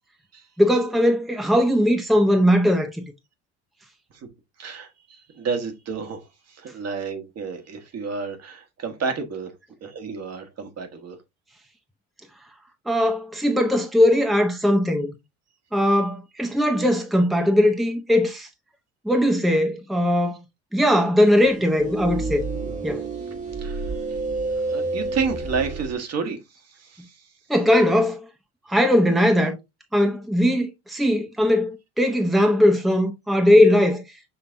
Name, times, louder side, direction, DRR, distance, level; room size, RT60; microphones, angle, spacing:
voice 1, 0.6-3.0 12.9-15.1 15.7-18.5 19.0-20.4 20.7-22.4 22.8-23.1 27.5-28.2 28.7-29.6 29.9-34.0, left 1 dB, ahead, 0.8 m, -19 dB
voice 2, 4.6-9.5 9.8-11.2 23.2-24.2 24.6-27.3, right 5 dB, 50° right, 1.3 m, -31 dB
sound 1, 21.3-26.0, right 3 dB, 25° right, 1.2 m, -29 dB
5.6 x 3.3 x 2.6 m
hypercardioid pair, 70°, 33 cm